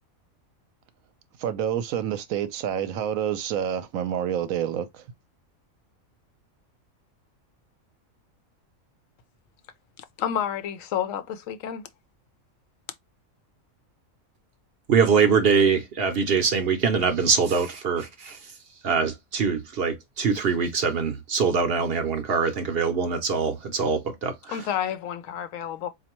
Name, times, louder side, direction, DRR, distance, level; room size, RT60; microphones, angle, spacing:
voice 1, 1.4-5.0, right 9 dB, 80° right, 1.0 m, -28 dB
voice 2, 10.0-11.8 24.5-25.9, left 9 dB, 75° left, 0.9 m, -30 dB
voice 3, 14.9-18.4 18.8-24.6, right 5 dB, 55° right, 0.8 m, -23 dB
4.2 x 2.6 x 2.9 m
omnidirectional pair, 1.4 m